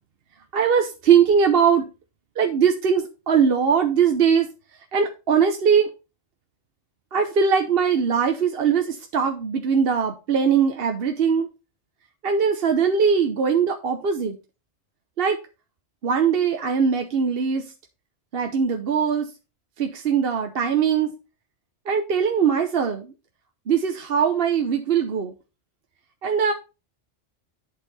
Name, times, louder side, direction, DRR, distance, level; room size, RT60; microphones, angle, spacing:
voice 1, 0.5-1.9 2.4-4.5 4.9-5.9 7.1-11.5 12.2-14.4 15.2-15.4 16.0-17.6 18.3-19.3 19.8-21.1 21.9-23.1 23.7-25.3 26.2-26.5, right 6 dB, 60° right, 5 dB, 1.0 m, -21 dB
10.5 x 4.5 x 4.1 m, 0.30 s
omnidirectional pair, 1.2 m